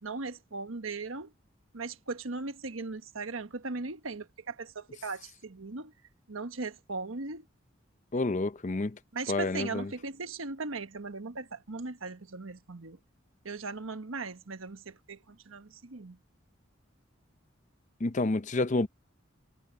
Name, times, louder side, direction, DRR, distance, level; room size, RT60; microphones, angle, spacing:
voice 1, 0.0-1.3 1.7-5.9 6.3-7.4 9.1-13.0 13.4-16.2, right 3 dB, 85° right, 1.3 m, -38 dB
voice 2, 8.1-9.0 9.3-9.9 18.0-18.9, left 2 dB, 35° left, 0.6 m, -29 dB
head